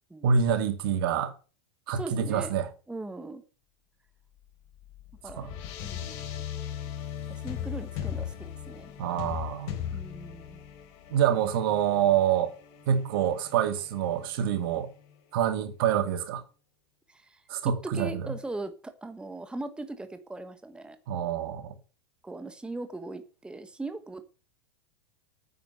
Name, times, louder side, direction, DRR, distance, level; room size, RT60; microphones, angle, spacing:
voice 1, 0.2-1.3 1.9-2.7 5.4-5.5 9.0-9.7 11.1-12.5 12.9-14.9 15.3-16.4 17.5-18.3 21.1-21.7, right 8 dB, 60° right, 2.3 m, -26 dB
voice 2, 1.9-2.5 2.9-3.4 5.2-5.5 5.8-6.2 7.3-8.9 9.9-10.6 17.1-17.4 17.8-21.0 22.2-24.2, right 2 dB, 5° right, 1.3 m, -39 dB
sound 1, 4.4-15.1, left 10 dB, 55° left, 3.3 m, -39 dB
9.3 x 9.2 x 7.7 m
hypercardioid pair, 100°, 13 cm